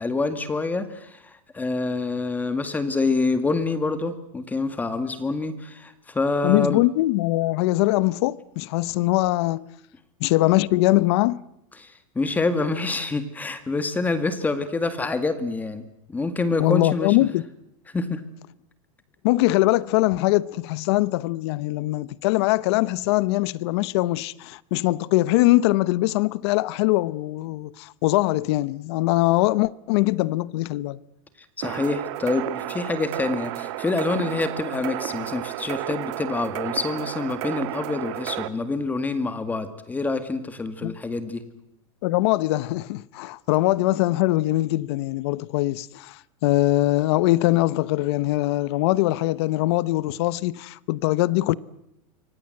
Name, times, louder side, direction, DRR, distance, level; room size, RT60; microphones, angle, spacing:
voice 1, 0.0-6.8 11.8-15.8 16.1-17.2 17.9-18.2 31.6-41.4, left 3 dB, 10° left, 2.0 m, -26 dB
voice 2, 6.4-9.6 10.2-11.4 16.6-17.4 19.2-31.0 40.8-41.0 42.0-51.6, left 18 dB, 55° left, 0.9 m, -22 dB
sound 1, 31.6-38.5, right 15 dB, 55° right, 1.8 m, -32 dB
27.5 x 24.5 x 7.9 m
supercardioid pair, 155°, 17 cm